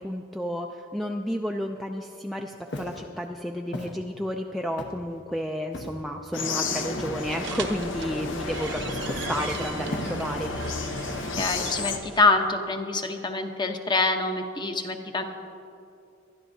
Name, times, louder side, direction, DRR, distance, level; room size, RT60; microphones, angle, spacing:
voice 1, 0.0-10.5, equal, ahead, 2 dB, 0.4 m, -32 dB
Walk footsteps, 2.7-3.0 3.7-4.0 4.8-5.1 5.7-6.1 7.0-7.3 8.2-8.7 9.1-9.4 9.9-10.4 11.4-11.9, left 1 dB, 60° left, 1.1 m, -37 dB
sound 1, 6.3-12.0, left 3 dB, 85° left, 0.9 m, -32 dB
sound 2, 7.2-12.2, right 3 dB, 70° right, 0.9 m, -38 dB
voice 2, 11.4-15.2, left 3 dB, 25° left, 5 dB, 0.8 m, -25 dB
22.0 x 12.0 x 2.7 m, 2.7 s
head